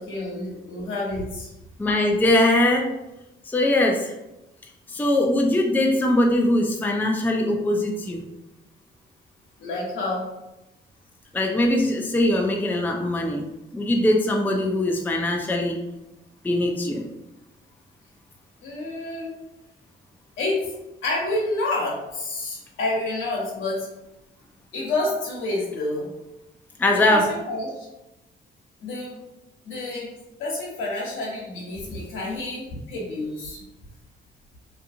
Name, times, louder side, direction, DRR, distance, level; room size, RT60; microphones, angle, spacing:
voice 1, 0.0-1.5 9.6-10.2 18.6-19.3 20.4-20.6 21.0-23.9 24.7-26.1 26.9-27.9 28.8-29.2 29.6-30.1 30.4-33.6, left 2 dB, 80° left, -3 dB, 1.0 m, -29 dB
voice 2, 1.8-2.9 3.5-4.1 4.9-8.2 11.3-13.4 13.7-15.8 16.4-17.0 26.8-27.2, left 1 dB, 10° left, 1 dB, 0.4 m, -21 dB
2.7 x 2.5 x 2.5 m, 0.95 s
cardioid pair, 90°, 20 cm